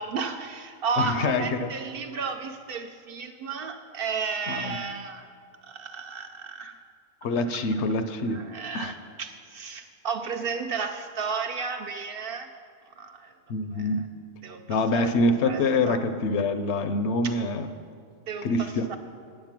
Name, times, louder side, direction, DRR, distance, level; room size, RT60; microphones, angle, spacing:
voice 1, 0.0-5.3 5.6-6.7 8.3-12.5 13.0-13.3 13.7-13.9 14.4-14.6 14.9-15.2 15.4-16.0 18.3-19.0, right 5 dB, 60° right, 6 dB, 0.6 m, -33 dB
voice 2, 1.0-1.7 4.5-4.8 7.2-8.5 8.7-8.9 13.5-14.1 14.7-17.7 18.4-19.0, left 2 dB, 70° left, 9 dB, 0.9 m, -25 dB
8.8 x 7.8 x 5.9 m, 2.3 s
omnidirectional pair, 1.2 m